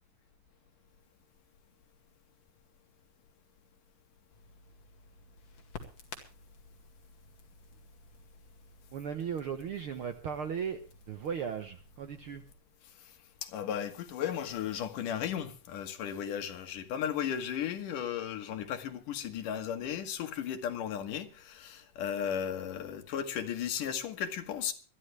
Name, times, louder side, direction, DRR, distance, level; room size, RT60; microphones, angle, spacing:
Crackle, 4.3-12.5, left 4 dB, 55° left, 3.1 m, -53 dB
voice 1, 8.9-10.8 11.1-12.4, right 7 dB, 65° right, 1.3 m, -36 dB
voice 2, 13.4-24.7, left 9 dB, 80° left, 3.1 m, -35 dB
21.0 x 13.5 x 3.3 m
omnidirectional pair, 3.6 m